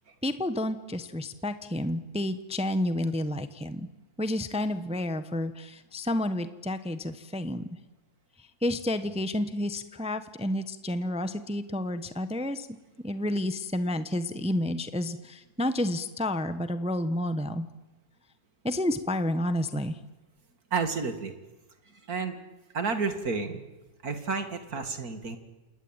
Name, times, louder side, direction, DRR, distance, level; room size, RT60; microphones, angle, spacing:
voice 1, 0.2-3.9 4.2-7.7 8.6-12.7 13.0-17.7 18.6-20.0, left 1 dB, 5° right, 11 dB, 0.6 m, -30 dB
voice 2, 20.7-21.3 21.9-22.4 22.7-23.6 24.0-25.4, right 4 dB, 55° right, 8 dB, 2.5 m, -31 dB
28.0 x 20.0 x 9.0 m, 1.1 s
omnidirectional pair, 2.0 m